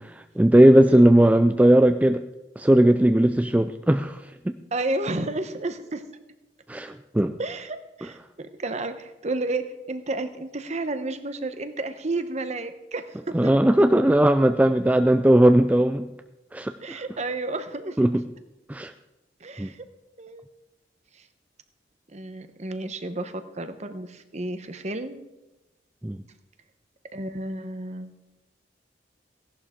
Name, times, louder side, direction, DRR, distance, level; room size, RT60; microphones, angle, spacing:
voice 1, 0.0-2.2 2.6-4.2 4.5-4.6 6.7-7.3 13.3-16.1 16.5-17.0 18.0-18.2 18.7-18.9 19.6-19.7 26.0-26.2, right 1 dB, 10° right, 8 dB, 0.3 m, -18 dB
voice 2, 4.7-6.0 7.4-13.5 16.8-18.0 19.4-19.8 20.2-20.5 21.2-21.3 22.1-25.2 27.1-28.2, right 2 dB, 40° right, 10 dB, 0.9 m, -31 dB
16.5 x 11.5 x 3.7 m, 1.0 s
head